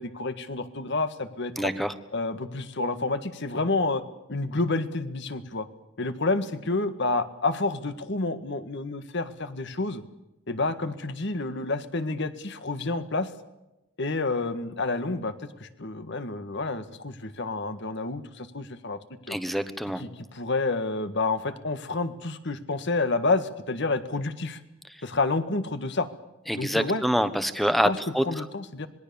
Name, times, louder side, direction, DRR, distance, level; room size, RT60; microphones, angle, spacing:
voice 1, 0.0-1.7 2.1-4.0 4.3-5.7 6.0-10.0 10.5-13.3 14.0-15.3 15.6-19.0 19.3-19.4 20.0-24.6 25.0-26.1 26.5-27.0 27.8-28.9, left 3 dB, 60° left, 10 dB, 1.8 m, -29 dB
voice 2, 1.6-1.9 19.3-20.0 26.5-28.4, equal, ahead, 11 dB, 1.2 m, -26 dB
26.5 x 21.0 x 7.1 m, 0.95 s
head